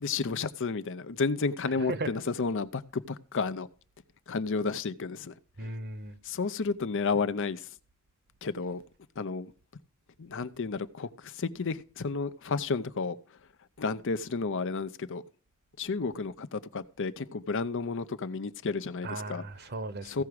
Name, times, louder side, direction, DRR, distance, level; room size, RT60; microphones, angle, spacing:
voice 1, 0.0-3.7 4.3-5.3 5.6-5.7 6.2-7.7 8.4-8.8 9.2-9.5 10.2-13.2 13.8-15.2 15.8-19.4 20.0-20.2, left 4 dB, 60° left, 0.6 m, -32 dB
voice 2, 1.8-2.1 5.6-6.2 19.0-20.2, right 2 dB, 50° right, 1.0 m, -36 dB
15.5 x 6.0 x 4.8 m
head